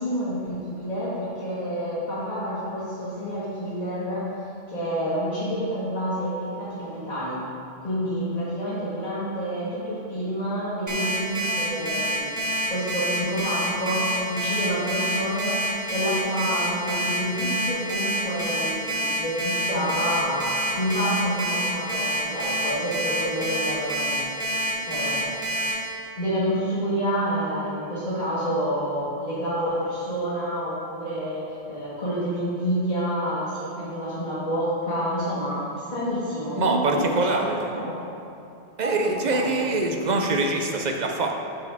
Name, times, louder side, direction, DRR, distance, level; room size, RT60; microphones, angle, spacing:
voice 1, 0.0-4.2 4.7-7.4 7.8-15.6 15.9-24.2 24.9-25.4 26.2-37.4 37.8-38.0 38.8-39.6, equal, 40° left, -13 dB, 1.9 m, -28 dB
Alarm, 10.9-25.7, equal, 15° right, 1.1 m, -27 dB
voice 2, 36.5-37.7 38.8-41.3, right 2 dB, 50° right, 2 dB, 0.6 m, -24 dB
8.8 x 4.8 x 3.5 m, 2.6 s
omnidirectional pair, 1.1 m